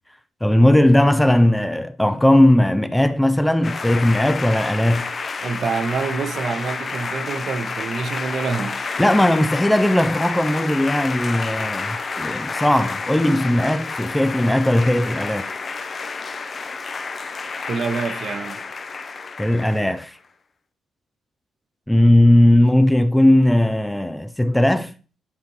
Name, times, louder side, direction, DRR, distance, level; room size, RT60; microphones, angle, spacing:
voice 1, 0.4-5.1 9.0-15.5 19.4-20.2 21.9-24.9, left 1 dB, 5° left, 0.4 m, -17 dB
sound 1, 3.6-20.1, left 4 dB, 40° left, 0.7 m, -30 dB
voice 2, 5.4-8.9 17.7-18.6, right 4 dB, 55° right, 0.9 m, -26 dB
10.5 x 5.1 x 3.2 m
cardioid pair, 90°, 0 cm